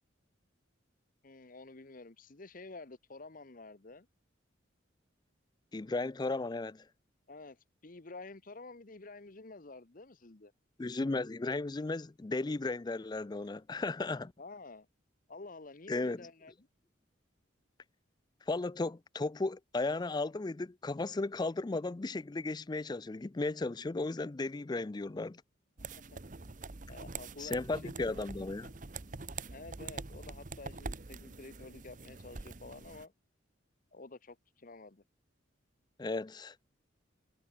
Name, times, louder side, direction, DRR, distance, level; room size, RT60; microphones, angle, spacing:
voice 1, 1.2-4.1 7.3-10.5 14.4-14.9 15.3-16.7 26.1-26.2 26.9-28.2 29.5-33.1 33.9-35.0, left 3 dB, 45° left, 1.0 m, -50 dB
voice 2, 5.7-6.8 10.8-14.3 15.9-16.2 18.5-25.4 27.4-28.7 36.0-36.7, left 3 dB, 20° left, 0.4 m, -35 dB
sound 1, 25.8-33.0, right 4 dB, 40° right, 1.1 m, -45 dB
head